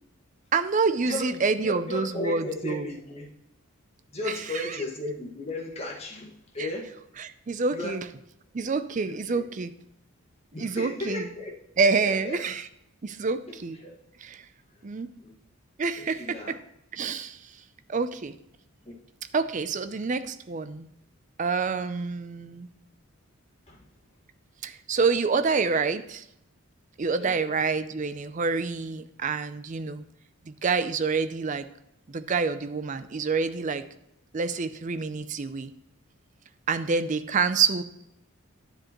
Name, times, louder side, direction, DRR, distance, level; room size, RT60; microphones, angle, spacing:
voice 1, 0.5-2.9 4.3-4.8 6.6-6.7 7.2-8.1 8.5-9.7 10.6-11.3 11.8-12.7 13.0-13.8 14.2-14.5 14.8-15.1 15.8-16.6 16.9-17.5 17.9-18.3 19.3-20.9 21.4-22.7 24.6-26.2 27.0-30.0 30.4-31.7 32.1-33.8 34.3-35.7 36.7-37.8, right 4 dB, 35° right, 12 dB, 0.4 m, -27 dB
voice 2, 1.0-3.3 4.1-6.9 7.7-8.0 9.0-9.4 10.5-11.5 12.0-12.4 13.5-14.0 15.2-15.3 16.0-16.5 18.8-18.9 23.7-23.8 27.2-27.5, left 2 dB, 30° left, -2 dB, 1.7 m, -35 dB
10.0 x 7.6 x 3.0 m, 0.79 s
head